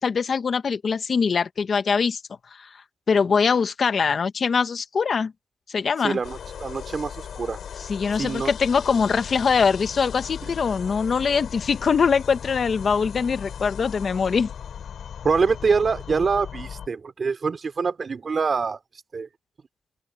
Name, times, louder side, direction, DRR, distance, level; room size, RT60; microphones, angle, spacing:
voice 1, 0.0-2.2 2.6-2.7 3.1-5.3 5.7-6.2 7.8-14.5, left 5 dB, 60° left, 1.3 m, -22 dB
voice 2, 6.0-7.6 8.2-8.5 15.2-18.8 19.1-19.3, right 5 dB, 50° right, 3.2 m, -25 dB
sound 1, 6.2-16.9, left 8 dB, 80° left, 7.8 m, -37 dB
open air
cardioid pair, 85°, 0 cm